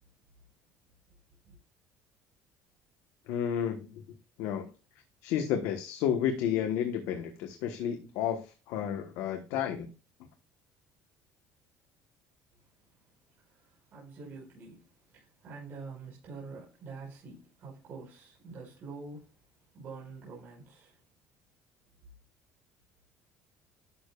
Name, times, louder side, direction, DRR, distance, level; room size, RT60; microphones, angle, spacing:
voice 1, 3.3-3.9 4.4-4.7 5.2-9.9, left 9 dB, 75° left, 1.2 m, -31 dB
voice 2, 13.4-19.4 19.7-21.0, right 4 dB, 40° right, 5.3 m, -46 dB
11.5 x 6.9 x 2.4 m
cardioid pair, 175°, 5 cm